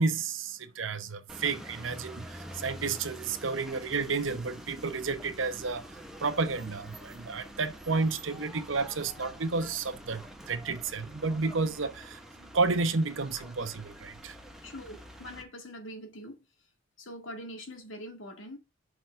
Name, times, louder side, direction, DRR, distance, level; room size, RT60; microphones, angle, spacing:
voice 1, 0.0-14.4, right 4 dB, 80° right, 0.9 m, -31 dB
sound 1, 1.3-15.4, equal, ahead, 1.0 m, -47 dB
voice 2, 14.6-16.5 17.0-18.6, equal, 75° left, 2.0 m, -43 dB
6.0 x 4.0 x 5.6 m
head